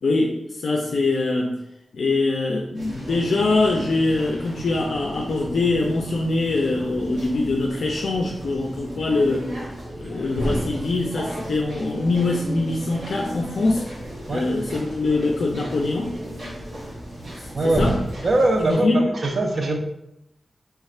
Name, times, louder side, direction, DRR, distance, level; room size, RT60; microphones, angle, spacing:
voice 1, 0.0-1.6 1.9-9.5 9.9-13.8 14.3-16.1 17.6-18.0 18.7-19.0, left 2 dB, 70° left, 0 dB, 0.4 m, -23 dB
sound 1, 2.7-18.8, right 1 dB, 75° right, 1.5 m, -34 dB
voice 2, 17.5-18.0 18.2-19.8, right 2 dB, 45° right, 3 dB, 0.5 m, -21 dB
3.4 x 2.4 x 4.2 m, 0.84 s
wide cardioid pair, 170°, 0 cm